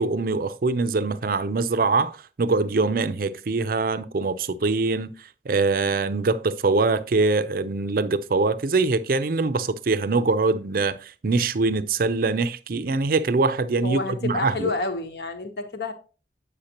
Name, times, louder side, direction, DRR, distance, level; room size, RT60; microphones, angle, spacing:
voice 1, 0.0-14.7, right 3 dB, 55° right, 0.5 m, -23 dB
voice 2, 13.8-15.9, left 2 dB, 65° left, 1.1 m, -29 dB
8.1 x 6.5 x 2.9 m
head